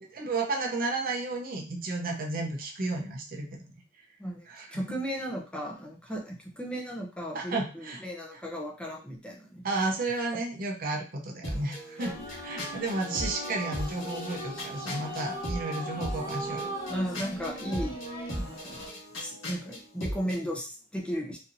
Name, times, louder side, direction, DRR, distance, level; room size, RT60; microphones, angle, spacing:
voice 1, 0.0-3.6 4.5-4.8 7.3-8.0 9.6-12.1 12.4-16.7, right 3 dB, 45° right, 1 dB, 0.6 m, -32 dB
voice 2, 4.2-9.9 12.0-12.4 16.9-18.8 19.2-21.4, equal, 5° left, -1 dB, 0.6 m, -36 dB
sound 1, 11.4-20.4, equal, 85° left, 1.5 m, -39 dB
sound 2, 12.0-18.9, equal, 50° left, 1.0 m, -39 dB
4.2 x 2.6 x 2.6 m, 0.35 s
head